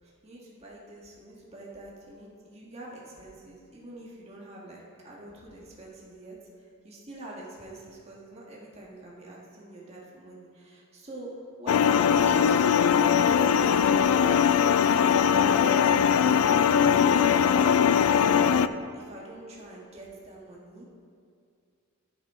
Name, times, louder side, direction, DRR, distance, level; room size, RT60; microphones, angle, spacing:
voice 1, 0.0-12.6 13.1-14.4 14.7-16.4 16.7-18.1 18.9-20.9, right 2 dB, 30° right, -4 dB, 1.6 m, -46 dB
sound 1, 11.7-18.7, left 7 dB, 80° left, 0.3 m, -21 dB
9.9 x 8.9 x 3.7 m, 2.3 s
head